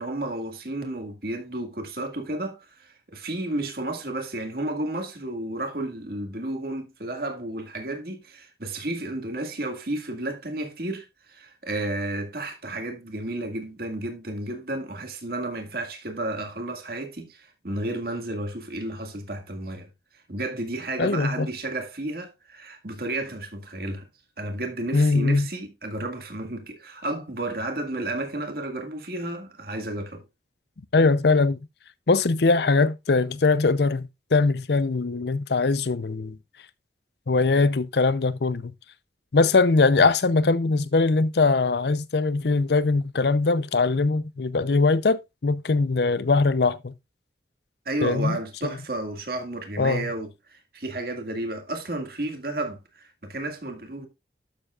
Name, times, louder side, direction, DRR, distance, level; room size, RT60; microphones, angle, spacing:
voice 1, 0.0-19.9 20.3-24.1 24.4-30.2 47.9-54.1, right 1 dB, 55° right, 1.9 m, -32 dB
voice 2, 21.0-21.5 24.9-25.5 30.9-31.6 32.1-36.4 37.3-38.7 39.3-46.9 48.0-48.4 49.8-50.1, left 3 dB, 65° left, 0.6 m, -21 dB
11.5 x 7.4 x 2.4 m
head